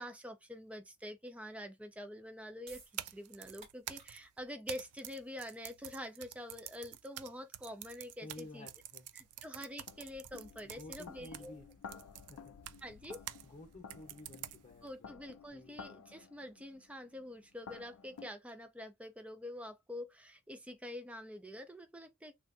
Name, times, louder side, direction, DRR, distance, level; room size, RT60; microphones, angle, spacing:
voice 1, 0.0-8.7 9.1-11.7 12.8-13.2 14.8-22.3, left 1 dB, 5° right, 0.5 m, -46 dB
sound 1, 2.6-8.9, right 4 dB, 60° right, 1.9 m, -62 dB
sound 2, 2.8-13.5 13.9-14.9, right 13 dB, 85° right, 0.3 m, -48 dB
voice 2, 8.2-9.1 10.6-12.6 13.4-15.2 15.5-15.8, left 2 dB, 35° left, 0.9 m, -53 dB
sound 3, 8.5-8.6 9.3-18.3, left 6 dB, 75° left, 0.4 m, -54 dB
3.3 x 2.6 x 2.6 m
head